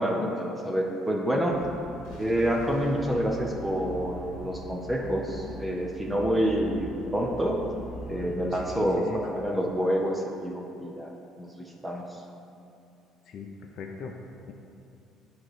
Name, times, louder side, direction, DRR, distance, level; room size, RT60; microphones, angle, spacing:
voice 1, 0.0-1.6 2.1-7.6 8.1-11.1 11.4-12.2, equal, 10° right, 0 dB, 0.6 m, -28 dB
sound 1, 1.5-8.7, equal, 90° left, 1.0 m, -42 dB
voice 2, 8.5-9.2 13.3-13.5 13.8-14.1 14.5-14.6, left 6 dB, 55° left, 2 dB, 0.5 m, -39 dB
8.8 x 3.1 x 4.8 m, 2.6 s
cardioid pair, 125°, 0 cm